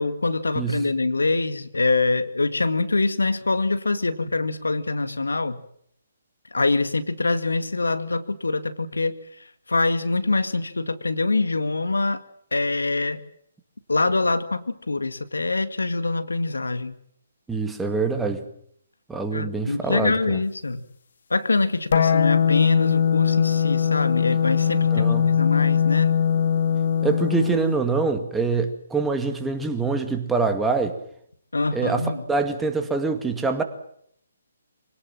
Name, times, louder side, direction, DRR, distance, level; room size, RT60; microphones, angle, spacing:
voice 1, 0.0-5.6 6.5-9.1 9.7-12.2 12.5-13.2 13.9-16.9 19.3-20.8 21.3-26.1 31.5-32.2, left 3 dB, 85° left, 11 dB, 2.0 m, -24 dB
voice 2, 0.6-0.9 17.5-18.4 19.1-20.4 24.9-25.4 27.0-31.0 31.7-33.6, right 4 dB, 5° right, 5 dB, 2.2 m, -25 dB
sound 1, 21.9-27.8, left 7 dB, 65° left, 2.1 m, -21 dB
25.5 x 18.5 x 7.7 m, 0.68 s
figure-of-eight pair, 145°, 0 cm